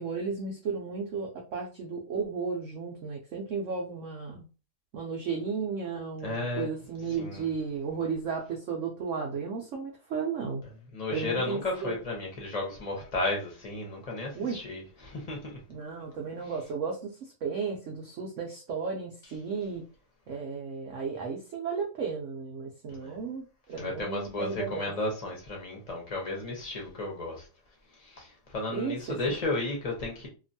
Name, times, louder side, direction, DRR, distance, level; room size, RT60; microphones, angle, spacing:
voice 1, 0.0-4.4 4.9-10.6 11.1-12.0 14.3-14.6 15.7-19.8 20.3-24.9 28.7-29.4, right 5 dB, 85° right, 0.6 m, -34 dB
voice 2, 6.2-6.7 7.2-7.4 10.9-15.6 22.9-23.2 23.8-27.4 28.2-28.3 28.5-30.3, left 2 dB, 35° left, 0.6 m, -33 dB
2.9 x 2.5 x 2.6 m
omnidirectional pair, 2.0 m